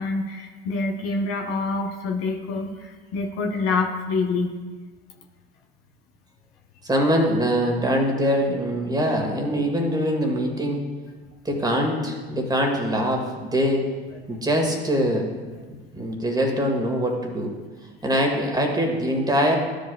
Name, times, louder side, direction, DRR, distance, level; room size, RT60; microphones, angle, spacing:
voice 1, 0.0-4.5 12.3-12.4 14.1-14.4, left 3 dB, 45° left, 2 dB, 1.0 m, -27 dB
voice 2, 6.8-10.8 11.5-13.8 14.3-15.3 15.9-17.5 18.0-19.6, equal, 15° right, 1 dB, 1.7 m, -23 dB
14.5 x 5.1 x 2.3 m, 1.4 s
figure-of-eight pair, 65°, 31 cm